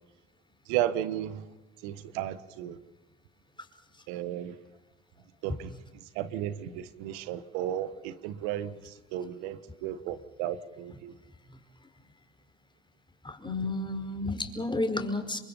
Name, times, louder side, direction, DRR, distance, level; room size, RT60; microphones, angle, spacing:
voice 1, 0.7-1.4 1.8-2.8 4.1-4.5 5.4-5.7 6.1-11.1, right 11 dB, 85° right, 1.4 m, -34 dB
voice 2, 13.2-15.4, left 2 dB, 15° left, 4.9 m, -32 dB
29.5 x 23.0 x 5.6 m
supercardioid pair, 75°, 30 cm